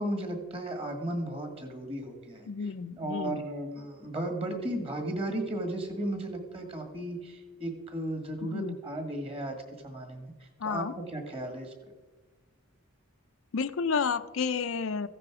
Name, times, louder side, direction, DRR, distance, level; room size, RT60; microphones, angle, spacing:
voice 1, 0.0-2.5 3.0-10.3 10.6-11.7, right 1 dB, 25° right, 5 dB, 1.9 m, -35 dB
voice 2, 2.5-3.4 8.5-8.8 10.6-10.9 13.5-15.1, left 5 dB, 65° left, 11 dB, 0.5 m, -31 dB
15.0 x 9.9 x 4.8 m, 1.3 s
head